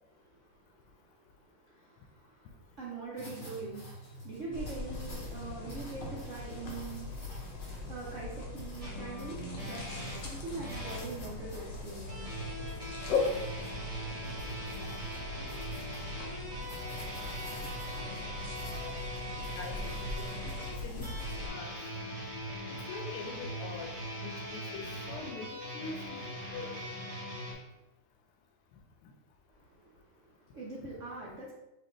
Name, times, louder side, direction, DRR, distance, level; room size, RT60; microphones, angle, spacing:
voice 1, 0.2-2.5 2.8-7.5 7.9-12.4 29.5-31.5, right 3 dB, 70° right, -5 dB, 0.7 m, -44 dB
sound 1, 3.2-21.3, equal, 35° left, 0.9 m, -48 dB
sound 2, 4.5-21.5, left 3 dB, 60° left, 1.3 m, -40 dB
sound 3, 8.8-11.0 12.1-27.5, equal, 30° right, 0.6 m, -41 dB
voice 2, 18.6-19.0 19.6-21.1 21.4-21.7 22.7-23.9 24.2-26.2 26.5-26.8 29.0-29.1 30.8-30.9, left 4 dB, 85° left, 4 dB, 1.6 m, -44 dB
4.4 x 3.3 x 3.0 m, 0.92 s
omnidirectional pair, 2.4 m